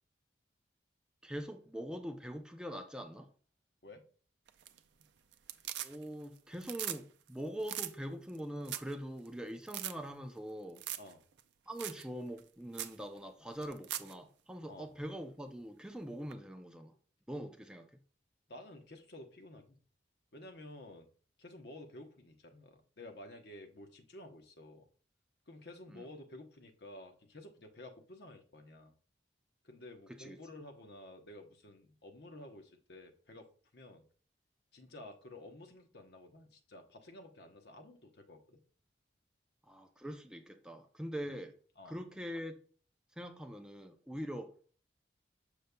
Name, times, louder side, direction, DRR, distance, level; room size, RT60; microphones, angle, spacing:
voice 1, 1.2-3.3 5.8-10.8 11.7-16.9 17.3-17.9 25.9-26.1 30.1-30.4 39.7-41.6 41.8-42.6 43.2-44.5, equal, 5° right, 0.4 m, -43 dB
sound 1, 4.5-5.0 5.3-6.2 6.5-7.0 7.3-7.4 7.6-7.9 8.3-8.4 8.6-8.9 9.2-9.3 9.7-9.9 10.8-11.1 11.4-11.5 11.8-12.0 12.4-12.5 12.7-13.0 13.6-14.1 16.3-16.4, right 12 dB, 75° right, 0.4 m, -40 dB
voice 2, 18.5-19.8 20.3-21.1 21.4-24.9 25.5-28.9 29.6-34.1 34.7-38.6 41.3-41.4 41.8-42.0 44.2-44.4, left 1 dB, 65° left, 0.9 m, -52 dB
6.6 x 6.5 x 2.2 m
head